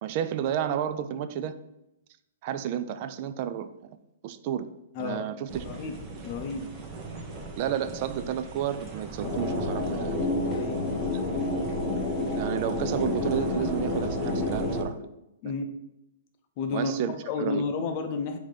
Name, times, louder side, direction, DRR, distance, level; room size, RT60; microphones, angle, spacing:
voice 1, 0.0-1.6 2.4-4.0 4.2-4.7 5.0-5.6 7.5-10.3 12.3-15.0 15.4-15.5 16.7-17.6, right 9 dB, 40° right, 12 dB, 0.3 m, -31 dB
sound 1, 5.5-14.8, right 3 dB, 25° right, 0.7 m, -40 dB
voice 2, 6.2-6.6 10.5-10.9 15.4-15.7 16.6-18.4, left 4 dB, 40° left, 6 dB, 0.6 m, -31 dB
sound 2, 9.2-14.8, left 2 dB, 10° left, 0.7 m, -29 dB
3.7 x 2.8 x 4.8 m, 0.88 s
hypercardioid pair, 145°, 0 cm